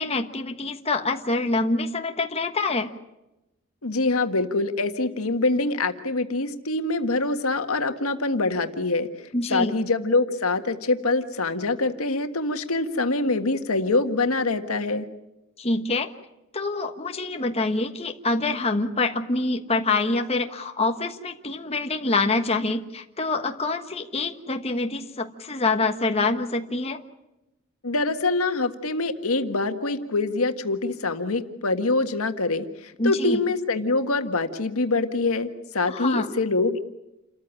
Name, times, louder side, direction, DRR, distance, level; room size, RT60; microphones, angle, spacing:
voice 1, 0.0-2.9 9.3-9.7 15.6-16.1 16.5-27.0 33.0-33.4 35.9-36.3, left 3 dB, 30° left, 5 dB, 1.3 m, -26 dB
voice 2, 3.8-9.1 9.5-15.1 27.8-36.8, left 3 dB, 85° left, 7 dB, 1.6 m, -25 dB
28.5 x 14.0 x 10.0 m, 0.96 s
head